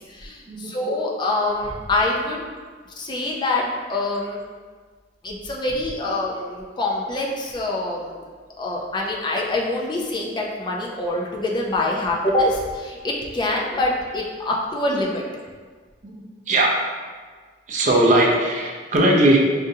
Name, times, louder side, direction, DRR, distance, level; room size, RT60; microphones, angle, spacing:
voice 1, 0.1-2.5 3.0-4.4 5.2-8.2 8.6-15.2, left 2 dB, 25° left, -2 dB, 0.4 m, -25 dB
voice 2, 16.0-16.8 17.7-19.4, right 1 dB, 45° right, -1 dB, 0.5 m, -19 dB
5.2 x 2.5 x 2.7 m, 1.5 s
head